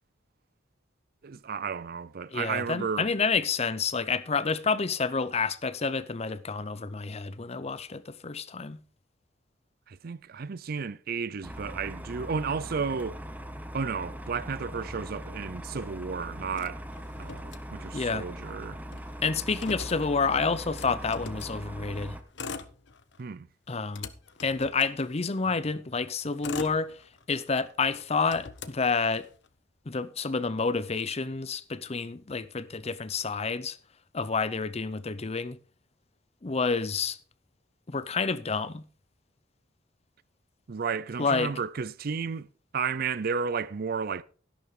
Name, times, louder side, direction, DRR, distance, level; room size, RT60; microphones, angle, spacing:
voice 1, 1.2-3.1 9.9-13.2 13.7-16.8 17.2-18.8 23.2-23.5 40.7-42.5 42.7-44.2, right 5 dB, 50° right, 0.5 m, -33 dB
voice 2, 2.3-8.8 17.9-18.3 19.2-22.2 23.7-24.1 24.4-26.9 27.3-29.3 29.9-33.8 34.1-35.6 36.4-37.2 37.9-38.8 41.2-41.5, left 4 dB, 35° left, 0.7 m, -29 dB
sound 1, 11.4-22.2, equal, 10° right, 1.0 m, -41 dB
Motor vehicle (road), 16.5-18.2 18.5-18.6 18.8-21.6 22.2-23.3 23.7-25.5 26.1-27.5 27.9-29.5, left 4 dB, 65° left, 0.9 m, -42 dB
12.5 x 11.5 x 3.8 m
head